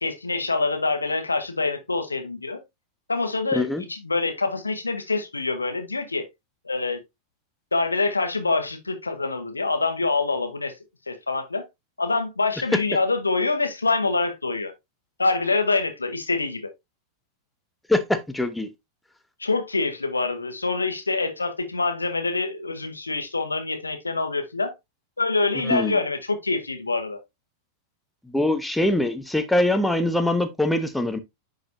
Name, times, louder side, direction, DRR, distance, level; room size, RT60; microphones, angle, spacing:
voice 1, 0.0-2.6 3.1-6.2 6.6-7.0 7.7-10.7 11.1-11.6 12.0-14.7 15.2-16.7 19.4-24.7 25.2-27.2, left 3 dB, 80° left, 1.2 m, -25 dB
voice 2, 3.5-3.8 17.9-18.7 25.6-25.9 28.3-31.2, left 1 dB, 5° left, 0.9 m, -23 dB
9.8 x 4.0 x 2.7 m
figure-of-eight pair, 90°, 0 cm